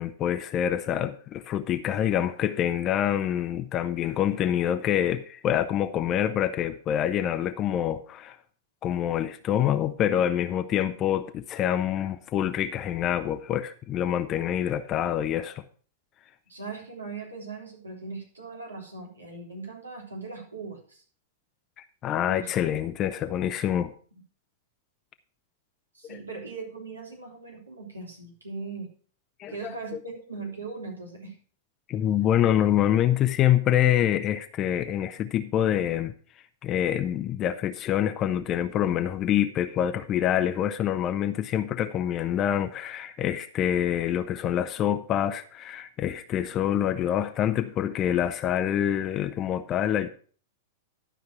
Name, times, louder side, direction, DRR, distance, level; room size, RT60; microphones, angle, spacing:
voice 1, 0.0-8.4 8.8-15.6 21.8-23.9 26.1-26.2 29.4-30.0 31.9-36.1 36.6-50.1, left 10 dB, 35° left, 0.7 m, -26 dB
voice 2, 16.5-21.0 22.3-22.5 23.2-23.5 25.9-28.9 29.5-31.4, right 3 dB, 90° right, 3.4 m, -39 dB
12.5 x 5.2 x 6.0 m
figure-of-eight pair, 100°, 0 cm